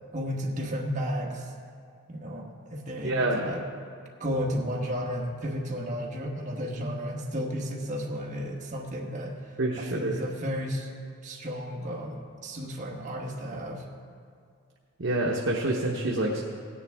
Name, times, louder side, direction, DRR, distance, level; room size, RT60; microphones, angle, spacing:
voice 1, 0.1-1.4 2.1-3.6 4.2-9.4 9.8-10.9 11.2-13.8, equal, 35° right, -2 dB, 1.4 m, -33 dB
voice 2, 3.0-3.5 9.6-10.2 15.0-16.4, right 2 dB, 60° right, -1 dB, 1.0 m, -27 dB
17.0 x 9.9 x 3.5 m, 2.3 s
head